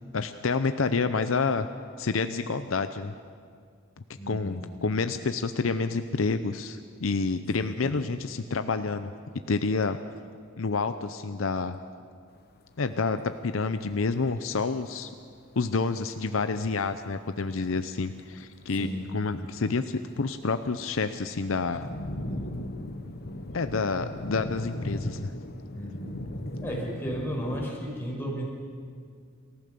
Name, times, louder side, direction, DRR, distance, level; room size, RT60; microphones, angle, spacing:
voice 1, 0.1-1.7 2.0-3.1 4.3-9.1 9.5-10.0 10.6-11.8 12.8-15.1 15.6-21.9 23.5-25.3, left 4 dB, 80° left, 9 dB, 0.7 m, -28 dB
voice 2, 4.2-4.6 7.6-7.7 18.8-19.0 25.7-26.1 26.6-28.5, equal, 10° left, -3 dB, 5.5 m, -34 dB
sound 1, 12.3-12.4 12.7-12.8 13.0-13.4 13.7-13.8 14.0-14.4 14.9-15.1 15.5-15.6 16.0-16.2 16.7-17.1 17.5-18.0 18.3-19.3 19.6-27.7, left 1 dB, 50° left, 1.2 m, -37 dB
27.5 x 14.5 x 6.8 m, 2.2 s
head